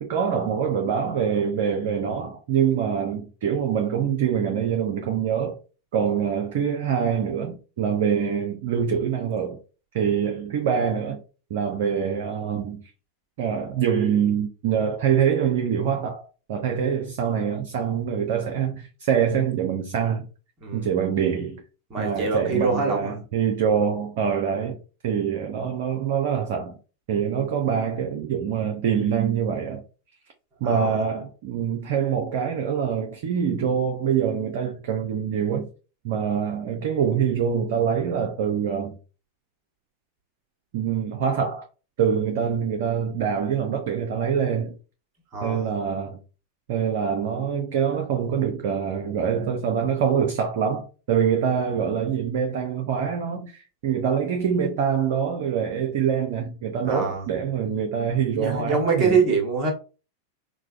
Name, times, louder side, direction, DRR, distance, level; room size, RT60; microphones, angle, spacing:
voice 1, 0.0-5.6 5.9-9.6 9.9-11.2 11.5-12.9 13.4-20.3 20.7-21.6 22.0-24.8 25.0-26.7 27.1-29.8 30.6-35.7 36.0-39.0 40.7-41.7 42.0-44.8 45.4-46.2 46.7-59.2, right 7 dB, 50° right, 0.5 m, -25 dB
voice 2, 20.6-20.9 21.9-23.2 30.6-31.0 45.3-45.7 56.8-57.2 58.4-59.7, right 4 dB, 30° right, 1.3 m, -24 dB
4.6 x 2.2 x 2.4 m
figure-of-eight pair, 90°, 0 cm